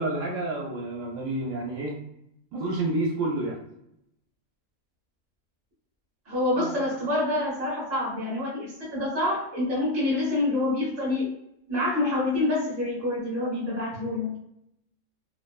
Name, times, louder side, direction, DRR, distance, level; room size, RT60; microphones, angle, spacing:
voice 1, 0.0-2.0 2.5-3.6 6.6-6.7, right 2 dB, 70° right, -2 dB, 0.9 m, -29 dB
voice 2, 6.3-11.3 11.7-14.4, left 2 dB, 15° right, -5 dB, 0.6 m, -27 dB
2.5 x 2.2 x 2.3 m, 0.78 s
omnidirectional pair, 1.6 m